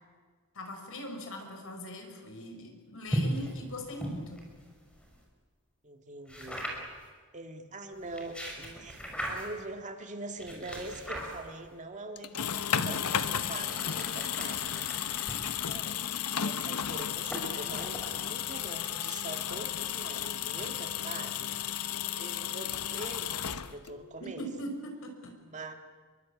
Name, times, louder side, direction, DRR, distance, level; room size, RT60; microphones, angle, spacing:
voice 1, 0.5-4.4 24.2-25.3, equal, 65° left, 4 dB, 5.8 m, -41 dB
sound 1, 3.1-5.2 6.3-7.0 8.0-9.7 10.4-11.7 12.5-19.0, equal, 5° left, 5.8 m, -39 dB
voice 2, 5.8-6.7 7.3-14.8 15.7-21.6 22.2-24.4 25.4-25.7, right 2 dB, 35° right, 5 dB, 2.1 m, -43 dB
sound 2, 12.2-24.1, left 9 dB, 90° left, 1.1 m, -34 dB
28.0 x 23.5 x 8.6 m, 1.5 s
head